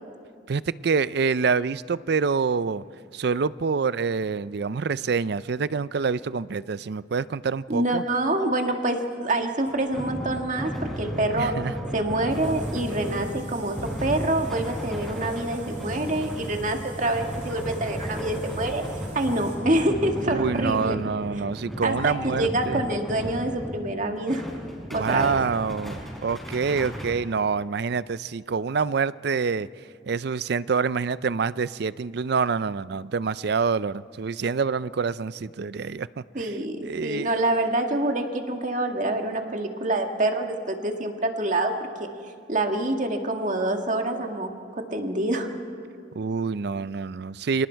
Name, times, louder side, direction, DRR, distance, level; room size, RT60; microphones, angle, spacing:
voice 1, 0.5-2.8 3.1-8.0 11.4-11.7 20.3-22.8 24.9-29.7 30.1-36.5 36.8-37.4 46.2-47.7, right 5 dB, 60° right, 17 dB, 0.4 m, -26 dB
voice 2, 7.7-11.5 11.9-18.8 19.1-21.0 21.8-24.5 24.9-25.3 36.3-41.7 42.5-44.5 44.8-45.5, right 1 dB, 40° right, 4 dB, 1.8 m, -26 dB
sound 1, 9.7-23.9 24.3-27.1, equal, ahead, 5.2 m, -34 dB
sound 2, 12.3-19.6, right 2 dB, 80° right, 7.8 m, -45 dB
29.5 x 25.5 x 4.6 m, 2.4 s
head